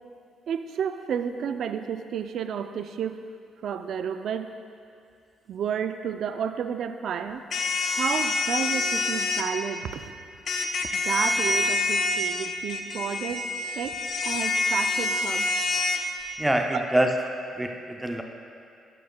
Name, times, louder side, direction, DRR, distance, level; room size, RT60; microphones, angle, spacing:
voice 1, 0.5-3.2 3.6-4.5 5.5-7.4 7.8-10.1 10.9-13.4 13.7-15.5 16.7-16.8, right 7 dB, 70° right, 9 dB, 0.3 m, -31 dB
sound 1, 7.5-9.4 10.5-16.0, left 3 dB, 55° left, 0.5 m, -26 dB
voice 2, 16.4-17.1 17.6-18.2, right 1 dB, 10° right, 3 dB, 0.5 m, -25 dB
11.5 x 6.8 x 2.2 m, 2.4 s
cardioid pair, 90°, 0 cm